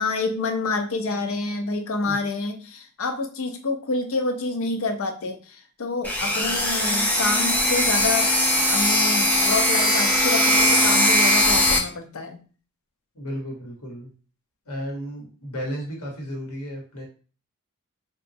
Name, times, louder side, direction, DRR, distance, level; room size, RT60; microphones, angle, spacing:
voice 1, 0.0-8.3 8.6-12.4, left 3 dB, 65° left, 5 dB, 0.6 m, -28 dB
sound 1, 6.0-11.8, left 1 dB, 5° left, 0.4 m, -20 dB
voice 2, 13.1-14.1 14.6-17.1, equal, 90° left, -1 dB, 1.1 m, -33 dB
3.9 x 2.3 x 2.7 m, 0.38 s
head